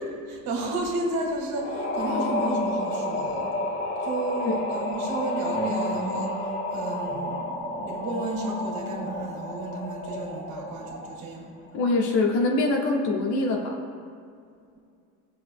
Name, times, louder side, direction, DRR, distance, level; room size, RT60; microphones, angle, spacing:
voice 1, 0.3-3.5 4.0-6.4 6.7-11.5, right 1 dB, 60° right, -1 dB, 2.3 m, -32 dB
sound 1, 1.5-11.3, left 1 dB, 40° left, 1.9 m, -31 dB
voice 2, 11.7-13.8, left 2 dB, 70° left, 0 dB, 1.6 m, -24 dB
20.0 x 7.6 x 2.2 m, 2.4 s
cardioid pair, 120°, 41 cm